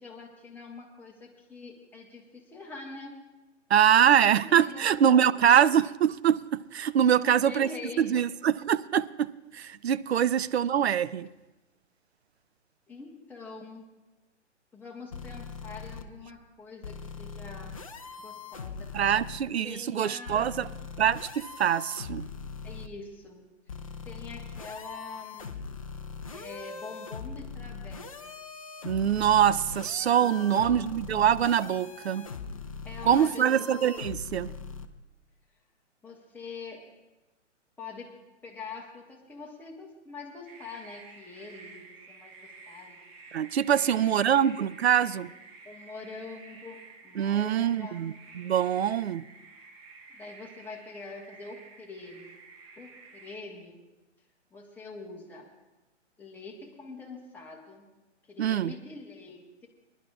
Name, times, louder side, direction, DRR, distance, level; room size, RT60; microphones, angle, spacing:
voice 1, 0.0-3.2 3.9-5.5 7.1-8.2 10.2-10.4 12.9-13.8 14.7-17.8 18.2-18.9 19.6-20.8 22.6-23.4 24.0-25.6 26.3-28.3 30.1-30.9 32.8-34.1 36.0-36.9 37.8-38.1 38.4-43.0 43.7-44.6 45.6-48.1 50.1-52.4 52.8-53.8 54.5-55.5 56.2-57.9 58.3-59.7, left 3 dB, 5° left, -1 dB, 0.9 m, -44 dB
voice 2, 3.7-6.4 6.7-7.7 8.0-11.3 18.9-20.7 21.0-22.3 28.8-32.3 33.1-34.5 43.3-45.3 47.2-49.2 58.4-58.7, right 9 dB, 60° right, 16 dB, 0.5 m, -24 dB
sound 1, 15.1-16.0 16.8-19.4 20.3-22.9 23.7-34.9, left 5 dB, 30° left, 0.4 m, -41 dB
sound 2, 40.5-53.4, right 4 dB, 30° right, 1.2 m, -51 dB
24.5 x 11.0 x 2.3 m, 1.1 s
figure-of-eight pair, 130°, 37 cm